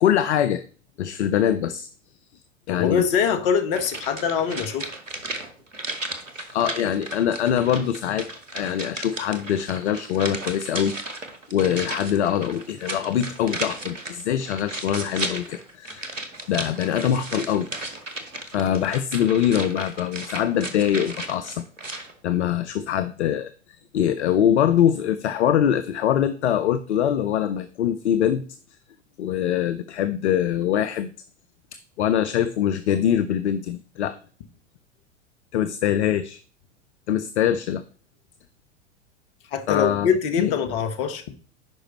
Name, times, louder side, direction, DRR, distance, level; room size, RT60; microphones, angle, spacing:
voice 1, 0.0-0.6 1.0-1.9 2.7-3.0 6.5-8.3 8.5-10.9 11.5-16.2 16.5-17.7 18.5-21.6 22.2-28.4 29.2-31.1 32.0-34.2 35.5-36.4 37.1-37.8 39.7-40.1 40.4-40.5, left 10 dB, 65° left, 12 dB, 0.6 m, -23 dB
voice 2, 2.7-4.9 39.5-41.2, left 7 dB, 45° left, 9 dB, 1.1 m, -23 dB
sound 1, 3.7-22.1 22.4-22.5, right 2 dB, 85° right, 1.1 m, -35 dB
10.5 x 4.9 x 3.0 m, 0.41 s
figure-of-eight pair, 90°, 37 cm